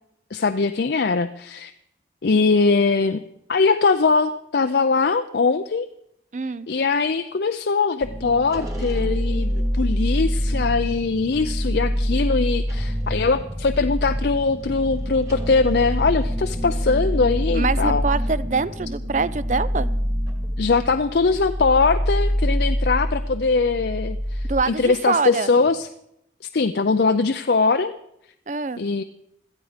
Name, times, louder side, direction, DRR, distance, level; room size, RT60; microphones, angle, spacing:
voice 1, 0.3-1.7 2.2-3.2 3.5-5.9 6.7-18.0 20.6-25.9 26.5-27.9 28.8-29.0, left 4 dB, 65° left, 8 dB, 0.5 m, -21 dB
voice 2, 6.3-6.7 17.5-19.9 24.4-25.5 28.5-28.8, right 4 dB, 40° right, 17 dB, 0.5 m, -24 dB
sound 1, 8.0-24.6 25.1-25.2 25.6-25.7, equal, 20° right, 2.1 m, -25 dB
17.0 x 13.5 x 5.1 m, 0.77 s
head